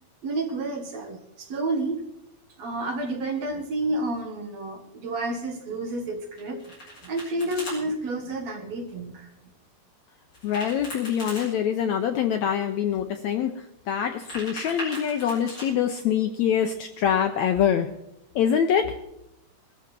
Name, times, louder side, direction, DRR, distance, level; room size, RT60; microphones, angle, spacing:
voice 1, 0.2-2.0 2.6-6.6 7.0-9.3, right 2 dB, 55° right, 4 dB, 2.6 m, -30 dB
Domestic sounds home sounds, 6.4-7.8 10.3-11.5 14.0-15.7, equal, 30° left, 7.5 m, -38 dB
voice 2, 10.4-17.9 18.4-18.9, left 8 dB, 75° left, 6 dB, 1.7 m, -24 dB
20.0 x 13.0 x 4.5 m, 0.85 s
omnidirectional pair, 4.0 m